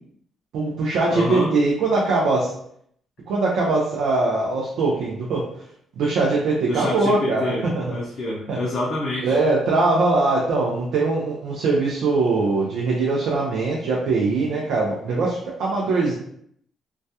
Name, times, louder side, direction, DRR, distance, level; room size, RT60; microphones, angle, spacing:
voice 1, 0.5-2.5 3.3-5.5 6.0-8.0 8.5-8.6 9.2-16.1, right 3 dB, 80° right, -3 dB, 0.5 m, -22 dB
voice 2, 1.1-1.5 6.7-9.3, left 1 dB, 60° left, -3 dB, 0.5 m, -27 dB
2.2 x 2.1 x 2.7 m, 0.68 s
cardioid pair, 90°, 0 cm